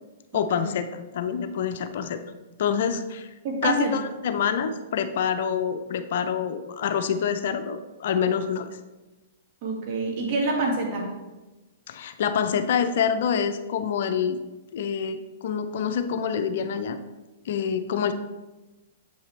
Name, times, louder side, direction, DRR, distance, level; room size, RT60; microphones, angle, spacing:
voice 1, 0.3-0.9 1.1-2.2 2.6-3.3 3.6-8.7 11.9-14.4 14.7-17.0 17.5-18.1, left 7 dB, 65° left, 9 dB, 0.5 m, -26 dB
voice 2, 3.4-3.9 9.6-11.1, right 2 dB, 50° right, -1 dB, 2.0 m, -26 dB
7.6 x 5.5 x 3.3 m, 1.1 s
hypercardioid pair, 125°, 0 cm